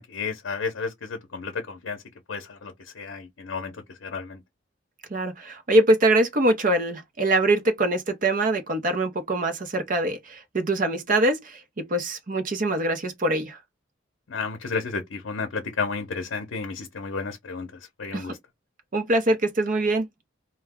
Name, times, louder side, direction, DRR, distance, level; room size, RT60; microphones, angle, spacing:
voice 1, 0.0-2.0 2.3-3.7 4.0-4.4 14.3-17.7 18.0-18.4, left 4 dB, 85° left, 0.6 m, -32 dB
voice 2, 5.1-13.6 18.1-18.3 18.9-20.1, right 1 dB, 45° right, 0.6 m, -23 dB
2.2 x 2.1 x 3.4 m
head